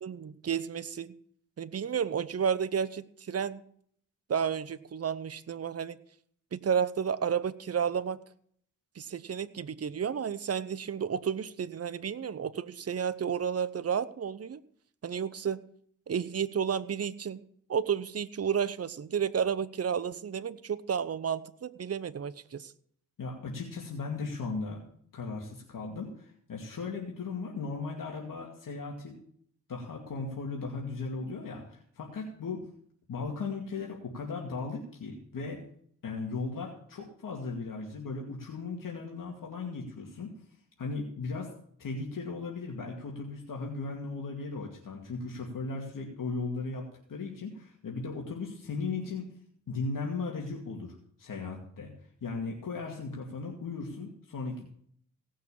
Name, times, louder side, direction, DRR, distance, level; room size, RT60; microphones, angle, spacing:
voice 1, 0.0-1.2 1.6-3.6 4.3-6.0 6.5-8.2 9.0-14.6 15.0-15.6 16.1-17.4 17.7-22.7, right 7 dB, 45° right, 14 dB, 0.8 m, -31 dB
voice 2, 23.2-24.8 25.1-29.2 29.7-32.6 33.1-35.6 36.0-40.3 40.8-41.5 41.8-49.3 49.7-51.9 52.2-54.7, left 4 dB, 70° left, 0 dB, 2.4 m, -37 dB
17.0 x 6.4 x 7.1 m, 0.63 s
cardioid pair, 70°, 34 cm